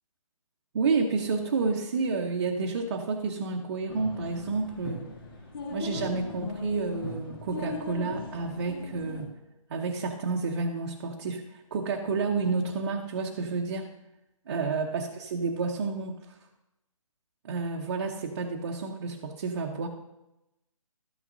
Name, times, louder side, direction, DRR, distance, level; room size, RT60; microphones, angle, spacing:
voice 1, 0.7-5.0 5.7-9.3 9.7-13.9 14.5-16.4 17.4-19.9, right 4 dB, 40° right, 0 dB, 0.9 m, -30 dB
sound 1, 3.9-9.3, left 3 dB, 40° left, 1.5 m, -38 dB
13.0 x 9.1 x 2.7 m, 0.93 s
hypercardioid pair, 155°, 18 cm